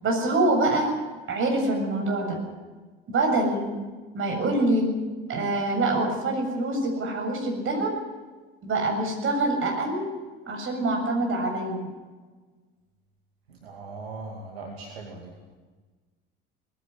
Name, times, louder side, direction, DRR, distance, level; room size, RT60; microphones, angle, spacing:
voice 1, 0.0-1.0 1.3-2.4 3.1-3.6 4.1-5.0 5.3-8.0 8.6-10.1 10.5-11.9, right 2 dB, 40° right, 2 dB, 7.2 m, -25 dB
voice 2, 13.5-15.3, right 3 dB, 75° right, 1 dB, 2.5 m, -39 dB
20.0 x 16.0 x 9.7 m, 1.4 s
figure-of-eight pair, 60°, 31 cm